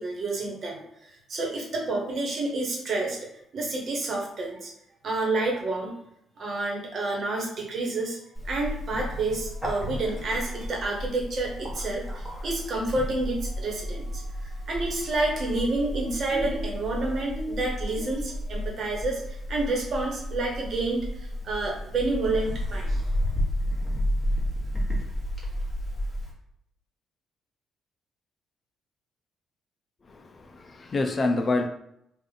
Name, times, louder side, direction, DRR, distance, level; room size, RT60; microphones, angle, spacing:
voice 1, 0.0-3.2 3.5-4.7 5.0-5.9 6.4-8.2 8.4-23.0, right 2 dB, 55° right, 0 dB, 1.1 m, -29 dB
Bird, 8.3-26.3, equal, ahead, 1.3 m, -32 dB
voice 2, 30.1-31.7, left 2 dB, 35° left, 6 dB, 0.4 m, -27 dB
3.4 x 2.4 x 3.8 m, 0.77 s
cardioid pair, 90°, 0 cm